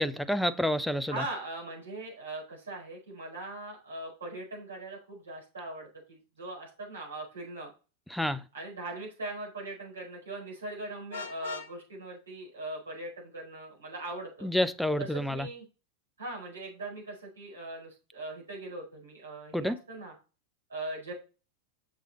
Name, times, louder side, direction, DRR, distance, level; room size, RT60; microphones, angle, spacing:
voice 1, 0.0-1.1 8.1-8.4 14.4-15.5 19.5-19.7, left 1 dB, ahead, 0.5 m, -28 dB
voice 2, 1.1-7.7 8.5-14.5 15.0-15.6 16.2-20.1 20.7-21.1, right 2 dB, 70° right, 4.7 m, -40 dB
Vehicle horn car horn honking, 11.1-11.7, left 5 dB, 60° left, 1.1 m, -40 dB
6.8 x 6.2 x 4.1 m
figure-of-eight pair, 90°, 0 cm